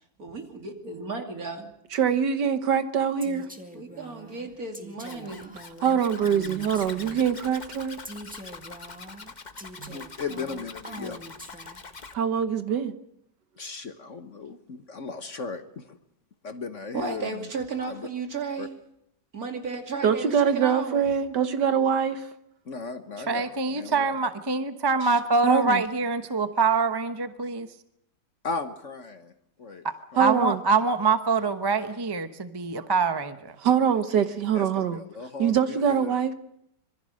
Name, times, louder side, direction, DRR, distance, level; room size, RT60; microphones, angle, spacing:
voice 1, 0.2-1.7 3.7-5.5 16.9-18.7 19.3-21.0, right 4 dB, 55° right, 3.0 m, -34 dB
voice 2, 1.9-3.5 5.8-8.0 9.8-10.0 12.1-12.9 20.0-22.3 25.4-25.8 30.2-30.6 33.6-35.0 35.4-36.3, right 8 dB, 70° right, 1.7 m, -24 dB
Female speech woman speaking, 3.2-7.4 8.0-12.0, right 1 dB, 5° right, 1.8 m, -44 dB
Zipper (clothing), 5.0-12.2, left 4 dB, 30° left, 1.0 m, -44 dB
voice 3, 9.9-11.2 13.6-16.0 16.4-17.5 17.9-18.1 18.6-18.7 22.6-24.1 28.4-29.3 29.6-29.9 30.1-30.3 34.5-36.1, left 4 dB, 45° left, 1.4 m, -36 dB
voice 4, 23.3-27.7 30.2-33.5, right 4 dB, 20° right, 0.7 m, -25 dB
26.0 x 22.0 x 6.5 m
omnidirectional pair, 1.9 m